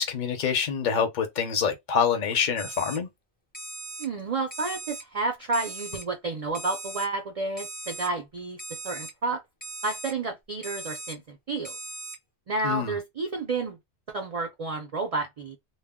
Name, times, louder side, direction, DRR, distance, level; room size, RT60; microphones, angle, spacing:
voice 1, 0.0-3.1 12.6-13.0, left 6 dB, 50° left, 0.7 m, -26 dB
Alarm, 2.6-3.0 3.5-4.1 4.5-5.0 5.5-6.0 6.5-7.1 7.6-8.1 8.6-9.1 9.6-10.1 10.6-11.1 11.6-12.2, right 2 dB, 10° left, 0.4 m, -39 dB
voice 2, 4.0-8.6 8.8-9.4 9.8-11.8 12.5-13.8 14.1-15.6, right 3 dB, 55° right, 0.4 m, -30 dB
2.2 x 2.1 x 3.5 m
omnidirectional pair, 1.2 m